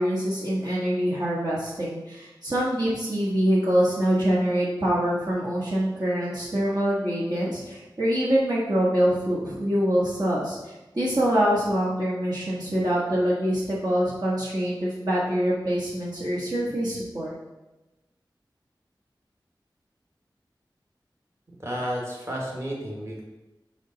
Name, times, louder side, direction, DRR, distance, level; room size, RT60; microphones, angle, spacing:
voice 1, 0.0-17.3, equal, 55° right, -7 dB, 1.3 m, -25 dB
voice 2, 21.6-23.2, equal, 35° right, -3 dB, 1.5 m, -31 dB
5.3 x 4.9 x 3.9 m, 1.0 s
wide cardioid pair, 70°, 8 cm